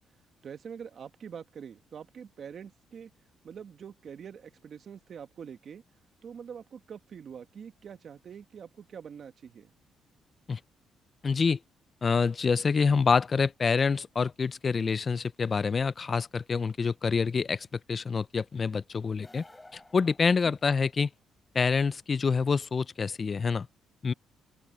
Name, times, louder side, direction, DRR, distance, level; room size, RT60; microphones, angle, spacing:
voice 1, 0.4-3.1 3.4-5.8 6.2-9.7 20.4-20.5, right 7 dB, 55° right, 1.7 m, -45 dB
voice 2, 11.2-11.6 12.0-19.4 19.7-21.1 21.5-23.7 24.0-24.1, left 5 dB, 40° left, 0.5 m, -27 dB
sound 1, 19.1-21.1, left 2 dB, 15° left, 4.1 m, -55 dB
open air
cardioid pair, 90°, 0 cm